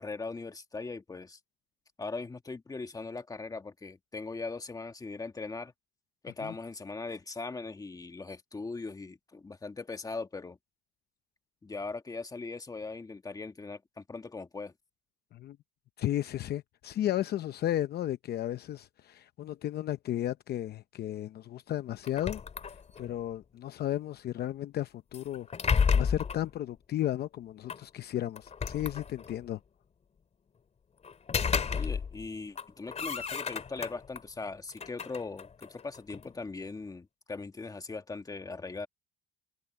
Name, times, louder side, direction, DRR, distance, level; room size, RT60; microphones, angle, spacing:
voice 1, 0.0-1.4 2.0-5.7 6.2-10.6 11.6-14.7 31.7-38.9, left 3 dB, 20° left, 1.7 m, -40 dB
voice 2, 16.0-22.4 23.0-25.5 25.9-29.6, left 12 dB, 55° left, 0.7 m, -34 dB
sound 1, 22.0-23.2 25.1-26.5 27.7-27.8 28.4-29.4 31.0-32.3 32.5-34.2 34.7-36.3, left 6 dB, 35° left, 3.1 m, -32 dB
cardioid pair, 115°, 20 cm